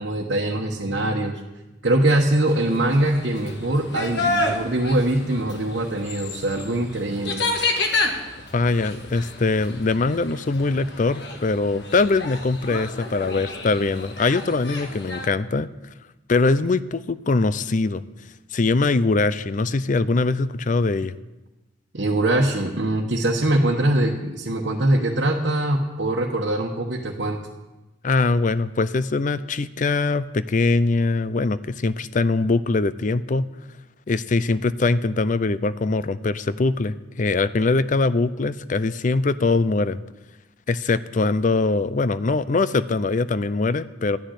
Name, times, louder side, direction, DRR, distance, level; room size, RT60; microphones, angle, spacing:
voice 1, 0.0-1.4 1.8-7.4 21.9-27.4, right 1 dB, 65° right, -2 dB, 1.2 m, -22 dB
sound 1, 2.5-15.3, left 2 dB, 65° left, 1.5 m, -30 dB
voice 2, 8.5-15.7 16.3-18.0 18.5-21.1 28.0-33.5 34.1-40.0 40.7-44.2, left 3 dB, 45° left, 16 dB, 0.5 m, -22 dB
12.5 x 6.5 x 9.9 m, 1.1 s
head